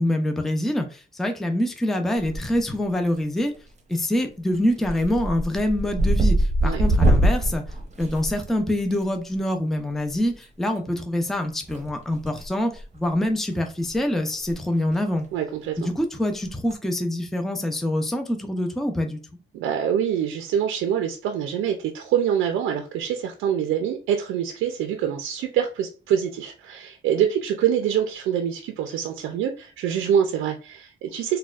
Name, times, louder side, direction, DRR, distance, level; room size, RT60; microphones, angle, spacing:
voice 1, 0.0-3.5 3.9-7.6 8.0-15.3 15.8-19.2, left 1 dB, ahead, 0.5 m, -25 dB
sound 1, 2.2-2.7 3.0-3.6 3.9-4.2 4.5-8.9 10.3-10.4 11.7-12.5 12.8-13.0 13.5-13.6 13.9-14.0 14.3-14.5 14.8-14.9 16.4-16.7, right 1 dB, 35° right, 0.7 m, -23 dB
voice 2, 15.3-15.8 19.5-31.4, right 9 dB, 85° right, 0.5 m, -25 dB
4.0 x 2.2 x 2.3 m
cardioid pair, 90°, 20 cm